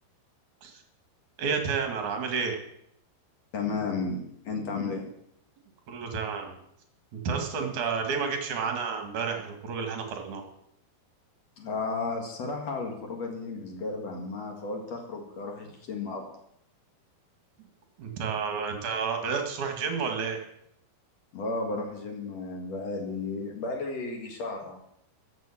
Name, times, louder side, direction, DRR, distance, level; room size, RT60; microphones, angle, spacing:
voice 1, 1.4-2.6 5.9-6.5 7.1-10.4 18.0-20.4, right 5 dB, 55° right, 4 dB, 2.8 m, -30 dB
voice 2, 3.5-5.0 7.6-7.7 11.6-16.2 21.3-24.8, left 3 dB, 50° left, 2 dB, 2.4 m, -33 dB
14.0 x 7.5 x 7.3 m, 0.74 s
omnidirectional pair, 5.1 m